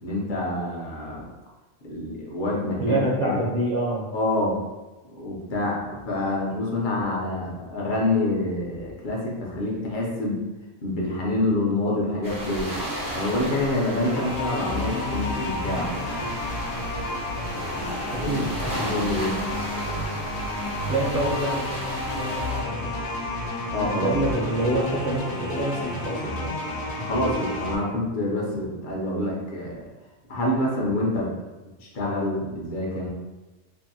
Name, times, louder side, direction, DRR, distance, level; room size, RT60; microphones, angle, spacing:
voice 1, 0.0-1.3 1.8-3.4 4.1-4.6 5.0-10.4 10.8-12.7 13.1-16.3 18.1-18.4 18.8-19.3 23.7-24.3 27.0-29.9 30.3-31.3 31.8-33.1, left 1 dB, 50° left, -3 dB, 0.7 m, -27 dB
voice 2, 2.8-4.1 18.2-18.9 20.9-23.0 23.8-26.6, right 1 dB, 60° right, -5 dB, 0.7 m, -27 dB
sound 1, 12.2-22.6, right 1 dB, 35° right, 0.3 m, -34 dB
sound 2, 14.0-27.7, left 2 dB, 75° left, 0.9 m, -31 dB
2.7 x 2.5 x 2.6 m, 1.1 s
omnidirectional pair, 1.2 m